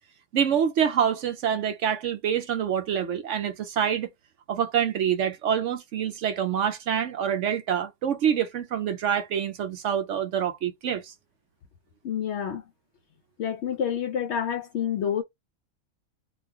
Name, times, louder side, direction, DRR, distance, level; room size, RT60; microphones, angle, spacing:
voice 1, 0.3-4.1 4.5-11.1, right 8 dB, 65° right, 0.8 m, -26 dB
voice 2, 12.0-12.6 13.4-15.2, left 8 dB, 65° left, 0.7 m, -28 dB
3.2 x 2.3 x 3.4 m
omnidirectional pair, 1.5 m